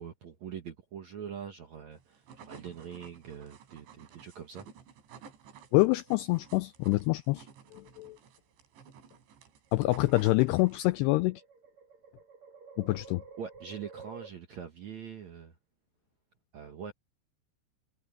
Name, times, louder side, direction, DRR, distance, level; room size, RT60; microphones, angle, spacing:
voice 1, 0.0-4.7 13.4-15.5 16.5-16.9, right 7 dB, 60° right, 1.9 m, -43 dB
sound 1, 2.0-11.1, right 7 dB, 80° right, 5.4 m, -53 dB
voice 2, 5.7-8.2 9.7-11.4 12.8-13.2, left 21 dB, 85° left, 2.4 m, -26 dB
sound 2, 5.7-6.5 7.7-8.1 9.0-14.3, right 5 dB, 40° right, 3.7 m, -52 dB
omnidirectional pair, 5.3 m